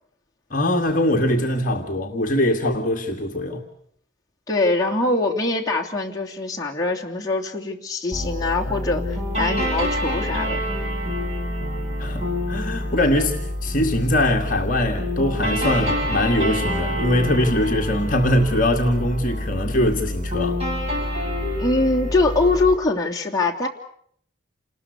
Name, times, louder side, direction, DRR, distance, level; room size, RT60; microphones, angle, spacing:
voice 1, 0.5-3.6 12.0-20.6, left 1 dB, 40° left, 2.0 m, -22 dB
voice 2, 4.5-10.6 21.6-23.7, left 2 dB, 15° left, 2.9 m, -23 dB
sound 1, 8.1-22.7, equal, 30° right, 7.2 m, -27 dB
29.0 x 20.0 x 8.3 m
head